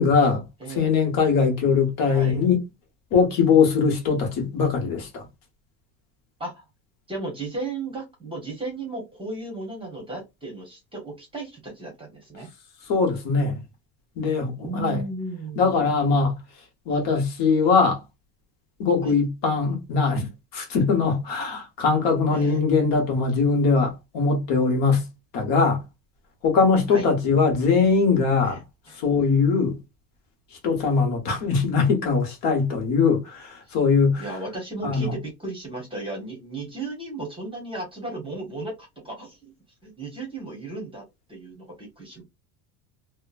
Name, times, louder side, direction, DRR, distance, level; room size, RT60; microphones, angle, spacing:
voice 1, 0.0-0.4 0.8-2.6 3.1-5.2 12.9-13.6 14.2-15.0 15.6-16.4 16.9-18.0 18.8-25.0 25.3-25.8 26.4-28.6 29.0-29.8 30.6-34.2 34.8-35.1, left 5 dB, 55° left, 1.2 m, -21 dB
voice 2, 0.6-0.9 2.1-2.4 6.4-6.6 7.1-12.5 14.6-16.0 19.0-19.2 22.3-22.6 26.9-27.1 28.4-28.6 28.9-29.0 33.7-33.8 34.2-39.5 39.8-41.0 41.3-42.2, right 2 dB, 10° right, 0.9 m, -35 dB
2.9 x 2.2 x 2.4 m
cardioid pair, 155°, 43 cm